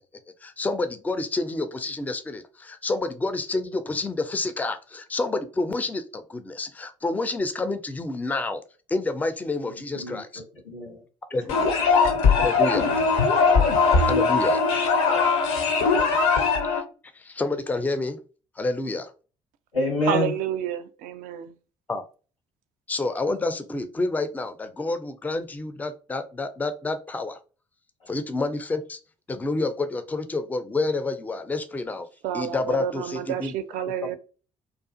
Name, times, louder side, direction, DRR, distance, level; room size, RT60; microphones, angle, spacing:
voice 1, 0.4-8.6 8.9-10.3 11.3-12.0 12.3-12.9 14.0-14.6 16.6-16.8 17.1-18.2 18.6-19.1 21.9-22.1 22.9-27.4 28.1-29.0 29.3-32.1 32.3-33.5, left 2 dB, 10° left, 0.4 m, -29 dB
voice 2, 9.9-11.0 13.4-13.5 19.7-20.3, left 2 dB, 85° left, 1.0 m, -28 dB
sound 1, 11.5-16.8, left 4 dB, 65° left, 0.6 m, -20 dB
voice 3, 20.1-21.6 32.2-34.2, right 10 dB, 60° right, 0.4 m, -29 dB
2.4 x 2.3 x 2.5 m
figure-of-eight pair, 45°, 16 cm